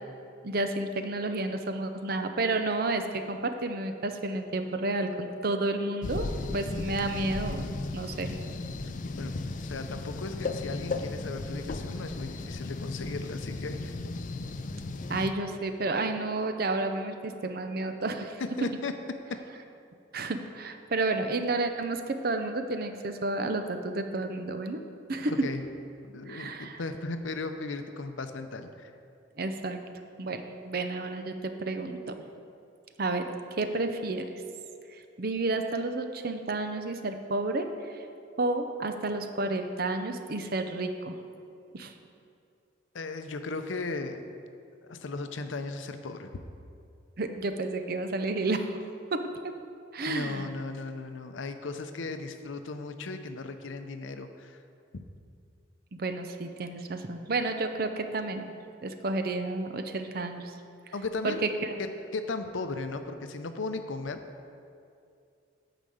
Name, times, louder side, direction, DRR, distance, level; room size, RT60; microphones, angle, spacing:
voice 1, 0.4-8.4 15.1-18.4 20.1-24.8 25.1-25.4 26.3-26.8 29.4-29.8 30.2-32.2 33.0-34.3 35.2-38.0 38.4-41.2 41.7-41.9 47.2-48.7 49.1-49.3 49.9-50.5 56.0-58.5 58.8-60.5 61.2-61.3 61.6-61.8, right 2 dB, 50° right, 7 dB, 0.6 m, -31 dB
sound 1, 6.0-15.3, left 3 dB, 40° left, 0.4 m, -35 dB
voice 2, 9.2-13.9 18.6-18.9 25.3-25.6 26.0-28.9 42.9-44.2 44.9-46.3 50.1-54.6 60.9-61.5 62.1-64.2, left 3 dB, 80° left, 8 dB, 0.6 m, -36 dB
9.1 x 5.1 x 7.7 m, 2.5 s
head